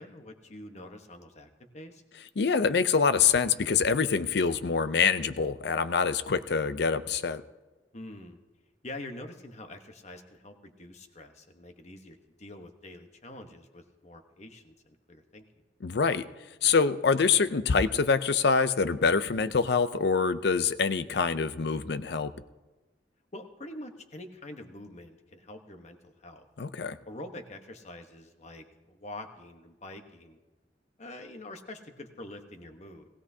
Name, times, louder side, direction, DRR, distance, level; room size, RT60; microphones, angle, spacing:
voice 1, 0.0-2.0 7.9-8.4 8.8-15.6 23.3-26.5 27.1-30.4 31.0-33.1, left 1 dB, 40° left, 6 dB, 1.1 m, -45 dB
voice 2, 2.4-7.4 15.8-16.3 16.6-22.3 26.6-27.0, left 5 dB, 65° left, 13 dB, 0.5 m, -25 dB
19.0 x 16.0 x 2.8 m, 1.2 s
head